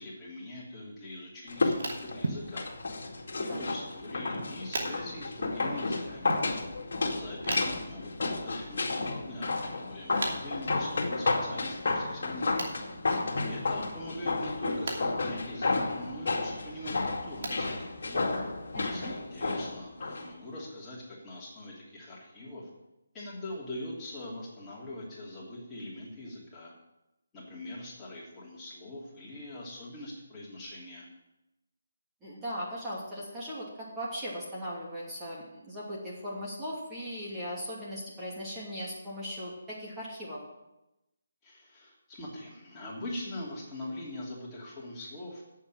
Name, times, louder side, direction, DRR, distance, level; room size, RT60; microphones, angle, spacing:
voice 1, 0.0-2.7 3.4-6.4 7.1-12.7 13.5-18.0 18.8-22.7 23.1-26.7 27.3-31.1 41.4-45.4, left 1 dB, 15° left, -6 dB, 2.9 m, -42 dB
sound 1, 1.5-20.3 20.6-20.7, left 3 dB, 60° left, 2.1 m, -32 dB
sound 2, 1.6-18.9, right 2 dB, 60° right, 2.7 m, -44 dB
sound 3, 2.2-2.6 3.5-4.7 6.3-6.6, right 3 dB, 80° right, 1.4 m, -36 dB
voice 2, 18.7-19.1 32.2-40.4, equal, 10° right, -7 dB, 2.7 m, -38 dB
8.5 x 7.4 x 8.9 m, 0.93 s
figure-of-eight pair, 155°, 0 cm